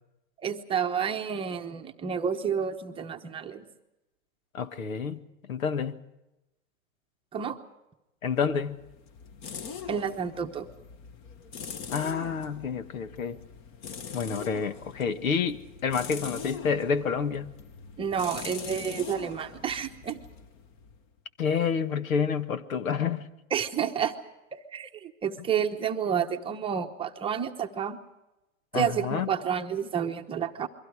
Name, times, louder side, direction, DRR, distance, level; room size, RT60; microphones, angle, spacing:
voice 1, 0.4-3.7 7.3-7.6 9.9-10.7 18.0-20.2 23.5-24.1 24.5-28.0 28.7-30.7, right 7 dB, 15° right, 4 dB, 1.0 m, -30 dB
voice 2, 4.5-6.0 8.2-8.8 11.9-13.4 14.1-17.5 21.4-23.3 28.7-29.3, left 6 dB, 80° left, 11 dB, 1.8 m, -29 dB
sound 1, 8.5-21.1, left 6 dB, 30° left, 1.4 m, -42 dB
29.0 x 23.0 x 4.8 m, 0.95 s
hypercardioid pair, 145°, 40 cm